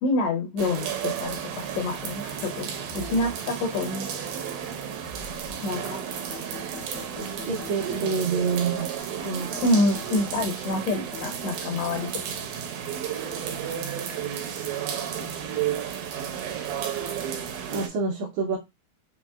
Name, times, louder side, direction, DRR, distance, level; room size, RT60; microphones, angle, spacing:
voice 1, 0.0-4.1 5.6-6.0 9.6-12.1, left 2 dB, 75° left, 1 dB, 1.7 m, -27 dB
sound 1, 0.6-17.9, right 8 dB, 90° right, 2.3 m, -32 dB
sound 2, 1.2-6.1, right 2 dB, 50° left, 0.8 m, -46 dB
sound 3, 6.2-8.1 8.7-11.6, left 3 dB, 5° left, 0.3 m, -42 dB
voice 2, 7.5-8.9 9.2-9.5 17.7-18.6, right 5 dB, 70° right, -2 dB, 1.9 m, -27 dB
5.4 x 2.9 x 2.3 m, 0.21 s
omnidirectional pair, 3.5 m